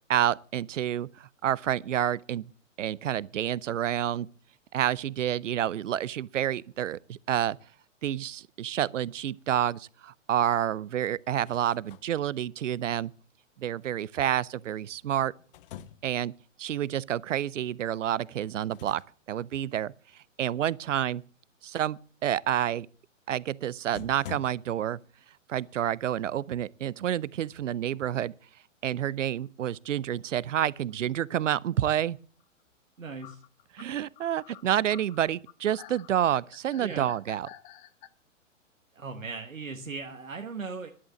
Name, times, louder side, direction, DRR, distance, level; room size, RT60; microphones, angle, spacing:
voice 1, 0.1-2.5 2.8-4.3 4.7-7.6 8.0-13.1 13.6-15.3 16.0-16.3 16.6-19.0 19.3-19.9 20.4-21.2 21.6-22.9 23.3-25.0 25.5-28.3 28.8-32.2 33.7-37.5, right 11 dB, 70° right, 0.6 m, -29 dB
sound 1, 11.3-12.1 14.7-16.3 18.4-19.1 19.4-19.6 23.4-23.5 23.9-24.5, left 11 dB, 45° left, 0.8 m, -46 dB
sound 2, 30.9-31.0 32.4-32.5 33.2-38.1, left 13 dB, 20° left, 0.6 m, -50 dB
voice 2, 33.0-33.4 36.8-37.1 38.9-40.9, right 4 dB, 85° right, 1.4 m, -38 dB
11.0 x 8.7 x 7.6 m
figure-of-eight pair, 115°, 39 cm